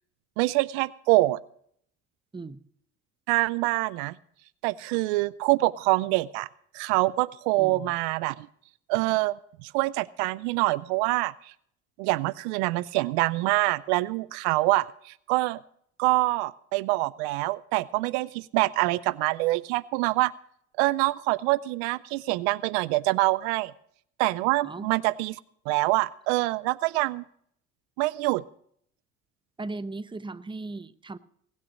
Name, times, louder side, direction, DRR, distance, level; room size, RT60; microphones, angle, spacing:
voice 1, 0.4-1.4 3.3-4.1 4.6-6.5 6.7-8.5 8.9-11.3 12.0-15.6 16.0-20.3 20.8-23.7 24.2-25.4 25.7-27.2 28.0-28.4, right 20 dB, 85° right, 22 dB, 0.5 m, -25 dB
voice 2, 7.6-7.9 24.6-24.9 29.6-31.2, right 3 dB, 15° right, 15 dB, 0.8 m, -37 dB
19.0 x 8.9 x 5.2 m, 0.65 s
supercardioid pair, 65°, 33 cm